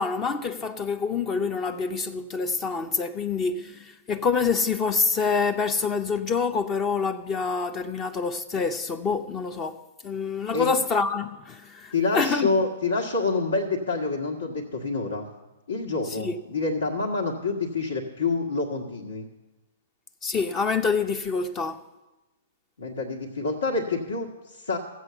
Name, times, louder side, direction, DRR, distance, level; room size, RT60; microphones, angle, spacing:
voice 1, 0.0-12.5 16.1-16.4 20.2-21.8, left 5 dB, 25° left, 0.6 m, -26 dB
voice 2, 11.9-15.2 15.7-19.3 22.8-24.8, left 3 dB, 75° left, 1.7 m, -27 dB
15.0 x 8.2 x 6.9 m
figure-of-eight pair, 115°, 0 cm